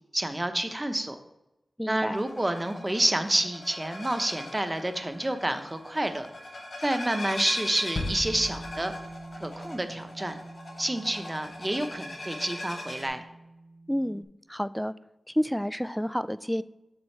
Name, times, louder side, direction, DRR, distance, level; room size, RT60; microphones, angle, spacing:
voice 1, 0.1-1.2 1.9-6.3 6.8-8.9 9.3-10.4 10.8-13.2, right 1 dB, 25° right, 7 dB, 0.9 m, -29 dB
voice 2, 1.8-2.2 13.9-14.9 15.3-16.6, equal, 5° left, 16 dB, 0.3 m, -29 dB
sound 1, 2.1-13.1, left 1 dB, 85° left, 2.5 m, -40 dB
sound 2, 8.0-9.9 10.3-10.4, left 2 dB, 60° left, 0.8 m, -37 dB
Bass guitar, 8.0-14.2, right 2 dB, 60° right, 0.9 m, -46 dB
7.3 x 6.8 x 3.3 m, 0.95 s
cardioid pair, 50°, 0 cm